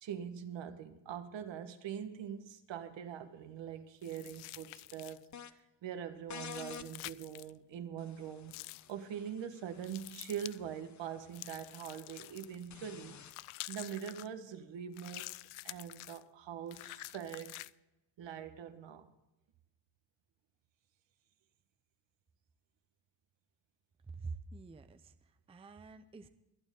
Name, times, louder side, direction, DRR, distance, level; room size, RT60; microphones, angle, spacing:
voice 1, 0.0-8.5 8.9-13.2 13.7-15.3 15.6-17.6 18.2-19.1, right 8 dB, 60° right, 1.5 m, -43 dB
sound 1, 4.0-5.3 6.4-7.5 8.5-8.9 9.8-10.6 11.3-12.7 13.2-14.3 14.9-16.2 16.7-17.7, left 19 dB, 80° left, 0.6 m, -48 dB
sound 2, 5.3-5.5 6.3-6.9 8.0-13.3, left 8 dB, 35° left, 0.8 m, -52 dB
voice 2, 24.0-26.3, right 4 dB, 10° right, 0.6 m, -47 dB
23.5 x 9.0 x 3.7 m
cardioid pair, 140°, 49 cm